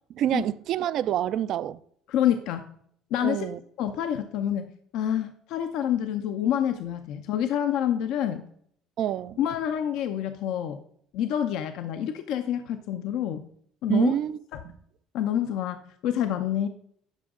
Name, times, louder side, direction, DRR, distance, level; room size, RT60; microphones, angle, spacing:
voice 1, 0.1-1.8 3.2-3.6 9.0-9.4 13.9-14.4 14.6-14.8, right 11 dB, 60° right, 0.4 m, -26 dB
voice 2, 2.1-2.7 3.1-3.5 3.8-8.4 9.4-10.8 11.1-13.4 13.8-14.1 14.5-14.6 15.1-16.7, left 10 dB, 75° left, 0.6 m, -27 dB
11.5 x 5.2 x 3.7 m
supercardioid pair, 90°, 0 cm